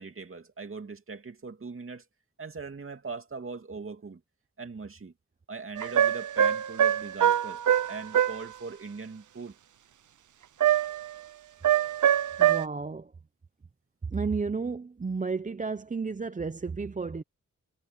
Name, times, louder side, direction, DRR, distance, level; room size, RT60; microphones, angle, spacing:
voice 1, 0.0-2.0 2.4-4.2 4.6-5.1 5.5-7.6 7.9-9.5, right 4 dB, 45° right, 2.5 m, -40 dB
sound 1, 5.8-8.4 10.6-11.1 11.6-12.7, right 10 dB, 75° right, 0.7 m, -24 dB
voice 2, 12.4-13.1 14.0-17.2, right 4 dB, 25° right, 0.7 m, -32 dB
wide cardioid pair, 120°, 31 cm